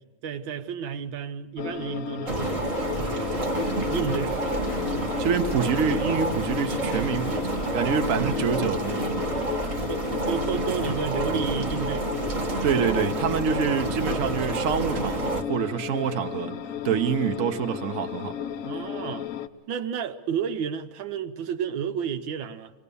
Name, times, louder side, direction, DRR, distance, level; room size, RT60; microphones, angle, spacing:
voice 1, 0.2-3.5 3.9-4.4 9.9-12.1 13.7-13.9 18.6-19.3 19.7-22.7, right 8 dB, 80° right, 1.6 m, -32 dB
sound 1, 1.6-19.5, left 9 dB, 55° left, 1.0 m, -34 dB
sound 2, 2.3-15.9, left 7 dB, 80° left, 1.9 m, -44 dB
sound 3, 2.3-15.4, right 2 dB, 20° right, 1.1 m, -29 dB
voice 2, 5.2-9.2 12.6-16.6 16.8-18.4, right 7 dB, 50° right, 1.1 m, -26 dB
25.0 x 18.0 x 6.9 m
omnidirectional pair, 2.1 m